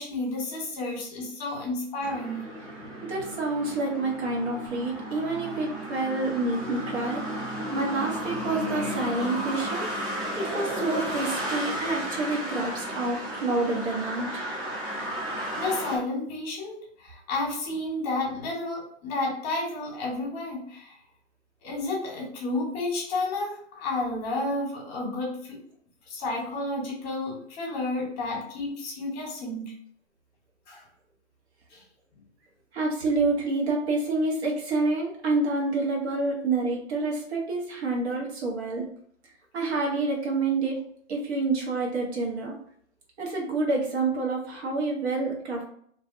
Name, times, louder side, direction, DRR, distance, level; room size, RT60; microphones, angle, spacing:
voice 1, 0.0-2.4 15.6-21.0 21.6-25.6 26.1-29.7 30.7-30.8 31.7-31.8, left 2 dB, 35° left, -1 dB, 1.0 m, -31 dB
sound 1, 2.0-16.0, equal, 10° right, 0.5 m, -34 dB
voice 2, 3.0-7.2 7.7-9.9 10.4-14.4 32.7-38.8 39.5-40.8 41.1-42.6 43.2-45.7, right 3 dB, 60° right, -1 dB, 1.0 m, -28 dB
2.5 x 2.1 x 2.5 m, 0.64 s
hypercardioid pair, 125°, 36 cm